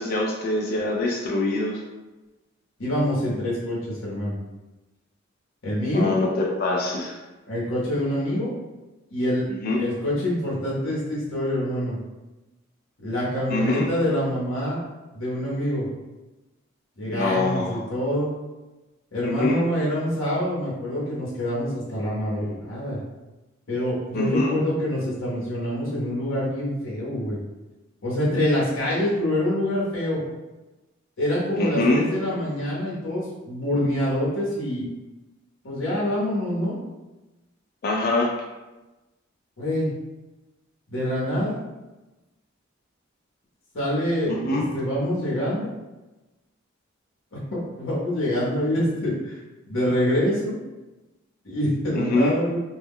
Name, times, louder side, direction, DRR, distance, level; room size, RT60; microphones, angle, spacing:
voice 1, 0.0-1.8 5.9-7.2 9.6-9.8 13.5-13.9 17.1-17.8 19.2-19.6 24.1-24.5 31.5-32.0 37.8-38.3 44.3-44.7 51.9-52.3, left 2 dB, 50° left, -1 dB, 0.3 m, -24 dB
voice 2, 2.8-4.4 5.6-6.1 7.5-8.5 9.1-9.4 9.8-12.0 13.0-14.8 15.1-15.9 17.0-18.3 19.1-23.0 23.7-27.4 28.0-30.2 31.2-34.9 35.6-36.7 39.6-39.9 40.9-41.6 43.7-45.7 47.3-49.4 49.7-50.6 51.4-52.6, equal, 75° left, -7 dB, 0.8 m, -26 dB
2.2 x 2.0 x 3.5 m, 1.1 s
head